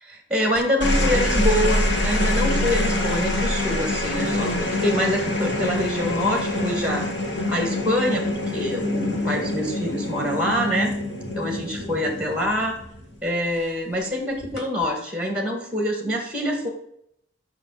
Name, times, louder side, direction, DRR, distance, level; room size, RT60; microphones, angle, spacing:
voice 1, 0.1-7.1 7.5-10.9 11.3-12.8 13.2-16.7, equal, 5° right, 3 dB, 1.9 m, -25 dB
sound 1, 0.5-13.2 14.4-14.8, left 1 dB, 80° left, 1.9 m, -25 dB
6.7 x 6.0 x 6.5 m, 0.72 s
head